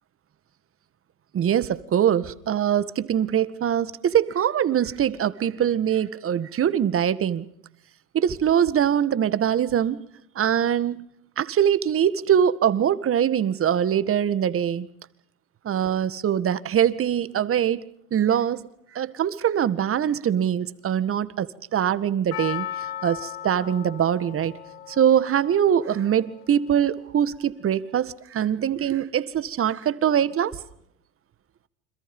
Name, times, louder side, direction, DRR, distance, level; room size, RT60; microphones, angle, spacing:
voice 1, 1.3-7.5 8.1-10.1 10.4-11.0 11.4-14.9 15.6-18.6 18.9-22.7 23.0-24.6 24.9-30.5, right 9 dB, 25° right, 1.9 m, -23 dB
Percussion, 22.3-26.7 26.9-27.0, left 12 dB, 75° left, 4.2 m, -37 dB
29.5 x 26.5 x 5.5 m
hypercardioid pair, 105°, 48 cm